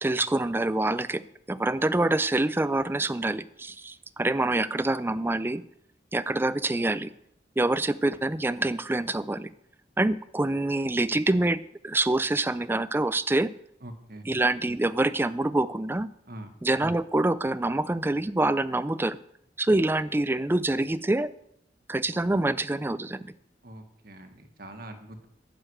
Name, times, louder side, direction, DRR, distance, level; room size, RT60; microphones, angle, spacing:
voice 1, 0.0-5.6 6.1-7.1 7.6-9.5 10.0-13.5 14.2-16.1 16.6-19.2 19.6-21.3 21.9-23.3, right 2 dB, 10° right, 15 dB, 0.4 m, -26 dB
voice 2, 13.8-14.3 16.3-16.5 23.6-25.2, right 1 dB, 55° right, 6 dB, 1.6 m, -43 dB
11.0 x 6.9 x 7.9 m, 0.75 s
head